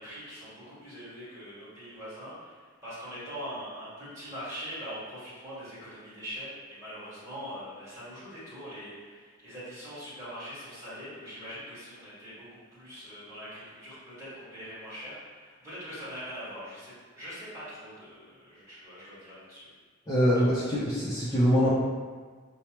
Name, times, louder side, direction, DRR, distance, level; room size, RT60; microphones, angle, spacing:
voice 1, 0.0-19.7, equal, 15° right, -13 dB, 1.4 m, -42 dB
voice 2, 20.1-21.8, equal, 15° left, -11 dB, 0.4 m, -24 dB
3.1 x 2.0 x 2.9 m, 1.5 s
head